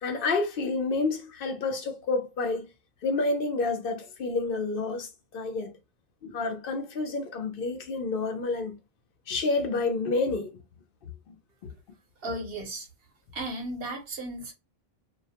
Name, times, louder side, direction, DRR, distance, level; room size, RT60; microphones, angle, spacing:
voice 1, 0.0-2.6 3.0-5.7 6.2-8.8 9.3-10.6 11.3-11.4 11.6-11.7, left 3 dB, 65° left, 0.7 m, -29 dB
voice 2, 12.2-12.9 13.3-14.5, right 1 dB, 70° right, 0.9 m, -35 dB
2.3 x 2.0 x 2.7 m
omnidirectional pair, 1.1 m